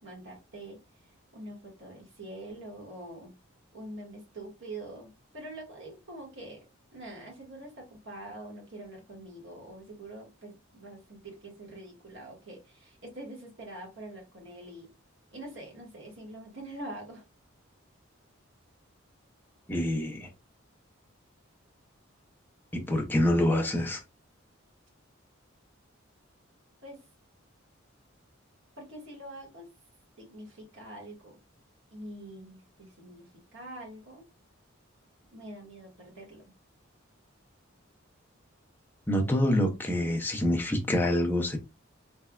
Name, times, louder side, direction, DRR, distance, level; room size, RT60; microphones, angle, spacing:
voice 1, 0.0-3.3 3.7-6.6 6.9-14.9 15.3-17.2 26.8-27.1 28.8-29.7 30.2-31.4 31.9-34.2 35.3-36.5, right 1 dB, 60° right, 1.8 m, -45 dB
voice 2, 19.7-20.3 22.7-24.0 39.1-41.6, left 1 dB, 10° left, 0.6 m, -26 dB
3.4 x 3.3 x 2.3 m
head